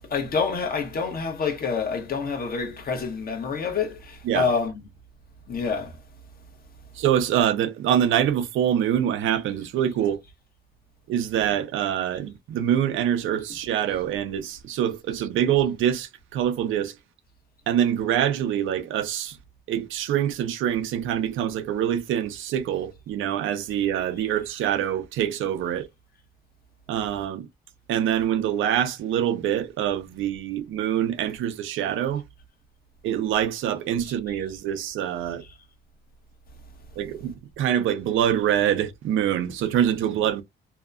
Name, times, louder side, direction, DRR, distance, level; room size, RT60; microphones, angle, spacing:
voice 1, 0.1-4.8 5.5-5.9, left 5 dB, 50° left, 1.0 m, -27 dB
voice 2, 7.0-10.2 11.1-16.9 17.7-19.4 19.7-25.9 26.9-27.5 27.9-32.2 33.0-35.4 37.0-40.4, right 10 dB, 80° right, 0.6 m, -25 dB
2.8 x 2.2 x 2.4 m
cardioid pair, 90°, 20 cm